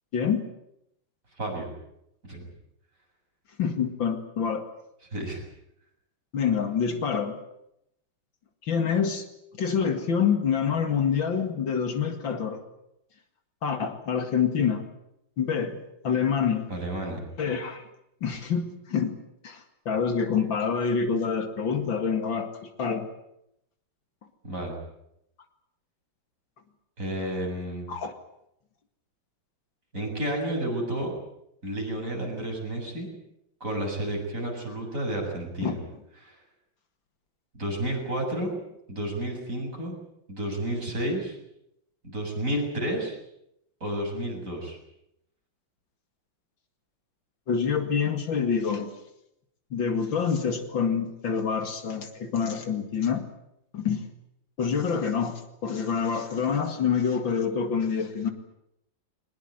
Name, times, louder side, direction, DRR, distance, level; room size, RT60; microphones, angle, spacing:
voice 1, 0.1-0.4 3.6-4.6 6.3-7.4 8.6-9.3 9.6-12.6 13.6-14.9 15.4-16.7 17.4-17.8 18.2-19.2 19.4-23.1 27.9-28.1 35.6-35.8 47.5-48.9 49.7-53.3 53.7-54.1 54.6-58.3, left 6 dB, 70° left, 7 dB, 2.8 m, -26 dB
voice 2, 1.4-1.7 2.3-2.5 5.1-5.4 16.7-17.2 24.4-24.8 27.0-27.9 29.9-31.1 31.6-33.1 33.6-35.8 36.2-36.4 37.6-38.5 38.9-40.0 40.3-41.4 42.0-43.2 43.8-44.8, right 1 dB, 40° right, 0 dB, 8.1 m, -31 dB
23.0 x 20.0 x 9.4 m, 0.79 s
omnidirectional pair, 2.2 m